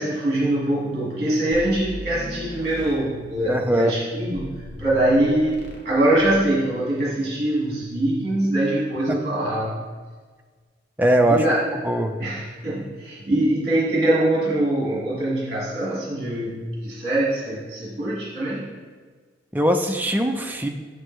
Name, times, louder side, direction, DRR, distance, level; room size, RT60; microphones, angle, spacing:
voice 1, 0.0-9.8 11.3-11.6 12.2-18.7, right 1 dB, 40° right, -6 dB, 1.5 m, -23 dB
sound 1, 1.5-3.7 4.3-5.9 6.2-6.5, equal, 60° left, 0.9 m, -37 dB
voice 2, 3.5-3.9 9.1-9.2 11.0-11.5 11.7-12.1 19.5-20.7, right 1 dB, 10° right, 4 dB, 0.4 m, -21 dB
6.5 x 6.5 x 3.1 m, 1.5 s
head